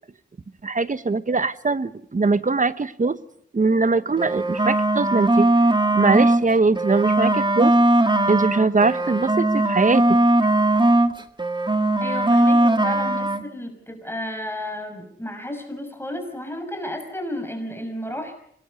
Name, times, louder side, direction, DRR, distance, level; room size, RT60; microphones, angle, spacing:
voice 1, 0.6-3.2 3.5-5.5 5.9-7.7 8.3-10.0, right 3 dB, 40° right, 14 dB, 1.1 m, -21 dB
sound 1, 4.1-6.4 6.8-11.1 11.4-13.4, right 1 dB, 25° right, 1.8 m, -19 dB
voice 2, 12.0-18.3, left 1 dB, 10° left, 5 dB, 5.9 m, -32 dB
26.5 x 20.5 x 5.4 m, 0.68 s
cardioid pair, 65°, 20 cm